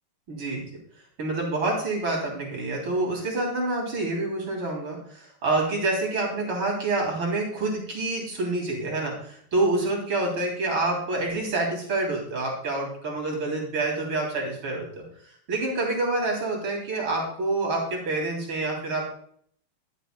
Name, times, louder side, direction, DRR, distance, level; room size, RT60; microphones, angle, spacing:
voice 1, 0.3-0.6 1.2-15.0 15.5-19.0, right 2 dB, 80° right, -1 dB, 4.4 m, -27 dB
13.5 x 12.5 x 2.3 m, 0.62 s
omnidirectional pair, 2.3 m